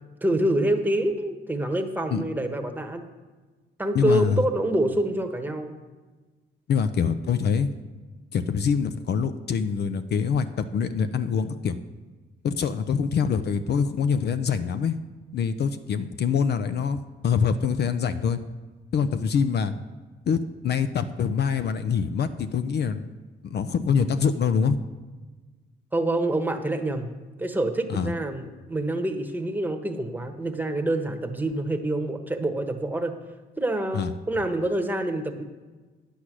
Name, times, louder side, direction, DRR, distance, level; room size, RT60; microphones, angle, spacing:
voice 1, 0.2-3.0 3.8-5.7 25.9-27.1 27.4-33.1 33.6-35.4, right 1 dB, 10° right, 5 dB, 1.1 m, -26 dB
voice 2, 3.9-4.4 6.7-7.7 8.3-11.8 12.4-15.0 15.3-18.4 18.9-19.7 20.3-23.1 23.4-24.8 27.9-28.1 33.9-34.1, left 6 dB, 55° left, 10 dB, 0.6 m, -25 dB
10.0 x 8.2 x 6.1 m, 1.3 s
cardioid pair, 90°, 20 cm